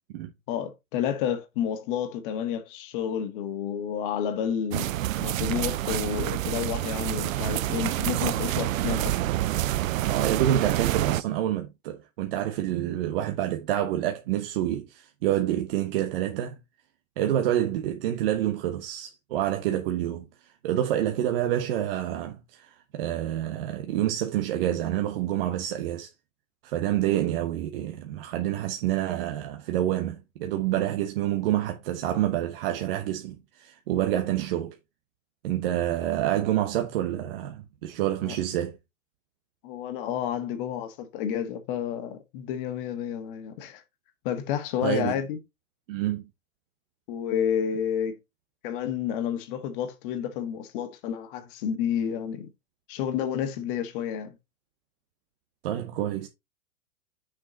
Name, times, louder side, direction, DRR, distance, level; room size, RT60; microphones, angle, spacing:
voice 1, 0.5-4.9 5.2-9.2 38.2-38.4 39.6-43.8 44.2-45.4 47.1-48.2 48.6-52.5 52.9-54.4, left 9 dB, 40° left, 1.6 m, -30 dB
sound 1, 4.7-11.2, right 14 dB, 70° right, 0.6 m, -27 dB
voice 2, 10.1-16.6 17.2-26.1 26.6-34.8 35.4-38.8 44.8-45.2 45.9-46.2 55.6-56.3, right 12 dB, 40° right, 0.9 m, -28 dB
6.6 x 5.2 x 4.1 m
hypercardioid pair, 155°, 42 cm